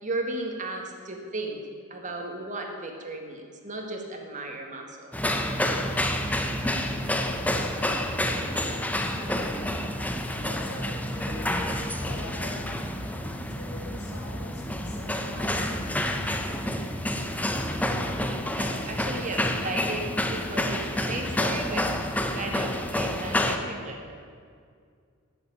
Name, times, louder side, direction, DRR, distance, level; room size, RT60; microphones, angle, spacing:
voice 1, 0.0-1.6 1.9-5.1 18.5-21.9 22.3-24.2, right 2 dB, 35° right, 2 dB, 1.7 m, -35 dB
sound 1, 5.1-23.6, left 1 dB, 5° left, 0.8 m, -29 dB
voice 2, 8.2-9.8 10.3-12.8 13.5-15.8, left 1 dB, 80° left, -2 dB, 3.4 m, -43 dB
13.0 x 7.1 x 9.3 m, 2.1 s
head